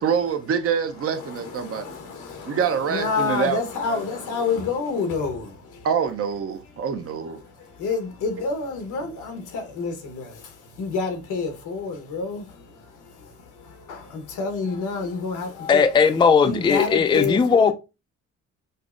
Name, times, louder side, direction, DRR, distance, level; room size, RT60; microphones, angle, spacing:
voice 1, 0.0-2.0 2.4-4.1 5.8-7.4 9.0-9.1, right 7 dB, 50° right, 0.6 m, -26 dB
voice 2, 2.9-5.4 7.8-9.4 9.8-9.9 10.8-12.4 14.4-15.8 16.4-17.7, left 4 dB, 80° left, 1.0 m, -27 dB
voice 3, 15.7-17.7, left 5 dB, 15° left, 0.3 m, -18 dB
5.3 x 2.0 x 2.4 m
cardioid pair, 90°, 30 cm